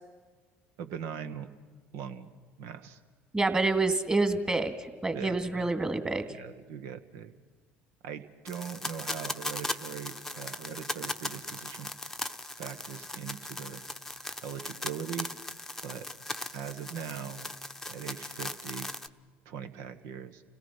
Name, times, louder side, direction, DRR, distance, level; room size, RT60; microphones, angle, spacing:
voice 1, 0.8-1.5 1.9-2.3 2.6-3.0 5.1-5.7 6.3-7.3 8.0-11.9 12.6-13.8 14.4-15.3 15.8-16.1 16.5-17.5 17.9-18.9 19.4-20.4, right 8 dB, 70° right, 9 dB, 1.4 m, -40 dB
voice 2, 3.3-6.3, right 3 dB, 15° right, 7 dB, 2.4 m, -27 dB
sound 1, 8.5-19.1, left 1 dB, 5° left, 0.9 m, -38 dB
29.0 x 17.5 x 5.8 m, 1.5 s
hypercardioid pair, 70°, 6 cm